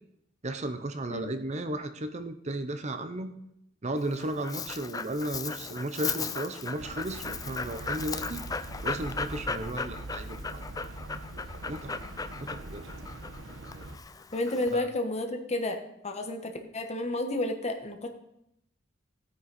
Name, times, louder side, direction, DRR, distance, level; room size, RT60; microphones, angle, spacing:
voice 1, 0.4-3.3 3.8-8.5 8.8-10.7 11.7-12.0 12.4-12.9 14.7-14.9, right 1 dB, 35° right, 9 dB, 0.7 m, -34 dB
Dog, 4.0-14.8, left 4 dB, 20° left, 0.4 m, -37 dB
sound 1, 6.8-14.0, right 2 dB, 75° right, 1.2 m, -42 dB
voice 2, 14.3-15.8 16.0-18.1, left 1 dB, 35° left, 4 dB, 1.4 m, -31 dB
16.5 x 9.2 x 4.2 m, 0.80 s
head